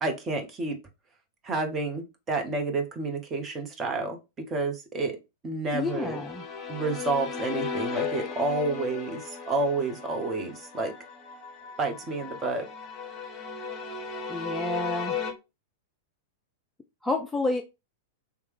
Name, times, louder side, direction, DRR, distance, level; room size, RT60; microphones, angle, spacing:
voice 1, 0.0-0.8 1.4-4.2 4.5-5.2 5.4-6.2 6.7-10.9 11.8-12.7, right 3 dB, 20° right, 0.9 m, -30 dB
voice 2, 5.7-6.4 14.3-15.2 17.0-17.6, left 2 dB, 10° left, 0.4 m, -29 dB
sound 1, 5.8-15.3, left 6 dB, 30° left, 0.8 m, -36 dB
3.4 x 3.1 x 3.3 m
figure-of-eight pair, 95°, 0 cm